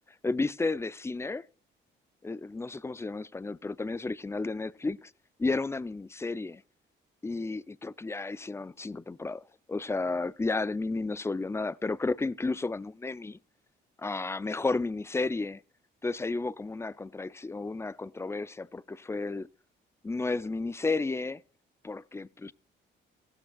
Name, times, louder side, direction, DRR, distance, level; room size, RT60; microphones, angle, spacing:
voice 1, 0.2-1.5 2.2-5.1 5.4-6.6 7.2-13.4 14.0-15.6 16.0-19.5 20.0-21.4 21.8-22.5, left 3 dB, 15° left, 0.4 m, -32 dB
15.5 x 13.0 x 2.4 m
cardioid pair, 90°, 20 cm